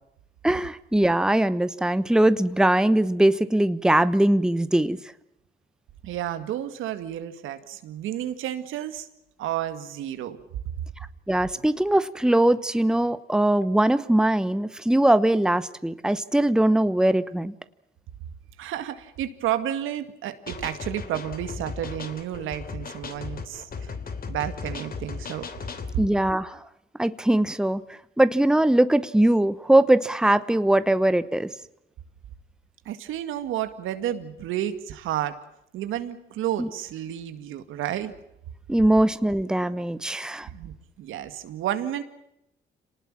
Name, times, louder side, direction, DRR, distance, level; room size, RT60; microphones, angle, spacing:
voice 1, 0.4-5.0 11.3-17.5 26.0-26.6 27.0-27.8 28.2-31.5 36.6-36.7 38.7-40.5, right 1 dB, 5° right, 14 dB, 1.0 m, -21 dB
voice 2, 6.0-9.1 9.4-10.4 18.6-23.9 24.3-25.4 32.9-35.4 35.7-38.1 40.5-42.0, right 11 dB, 85° right, 9 dB, 2.1 m, -31 dB
sound 1, 20.5-26.0, left 5 dB, 50° left, 3.0 m, -36 dB
26.5 x 19.0 x 7.5 m, 0.85 s
cardioid pair, 90°, 20 cm